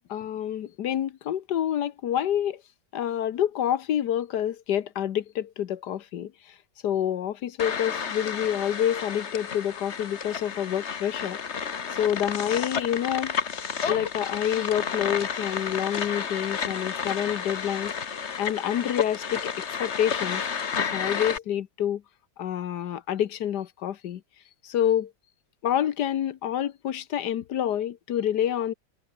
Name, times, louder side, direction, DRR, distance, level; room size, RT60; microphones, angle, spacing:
voice 1, 0.1-2.6 2.9-6.5 6.8-11.4 11.9-13.4 13.9-17.9 18.4-20.4 20.8-22.0 22.4-24.2 24.6-25.1 25.6-28.7, left 10 dB, 70° left, 1.5 m, -28 dB
sound 1, 7.6-21.4, left 6 dB, 45° left, 1.4 m, -31 dB
omnidirectional pair, 1.9 m